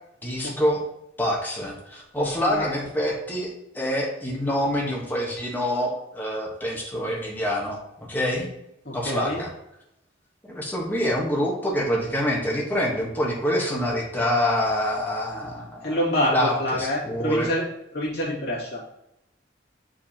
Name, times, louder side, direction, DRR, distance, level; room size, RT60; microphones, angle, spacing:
voice 1, 0.2-0.8 1.2-8.5 8.9-9.5 10.4-16.0 16.3-17.5, equal, 10° left, -3 dB, 1.2 m, -26 dB
voice 2, 2.1-2.7 8.8-9.4 15.8-17.6 17.9-18.8, equal, 60° left, -6 dB, 2.4 m, -27 dB
7.0 x 5.0 x 2.9 m, 0.83 s
head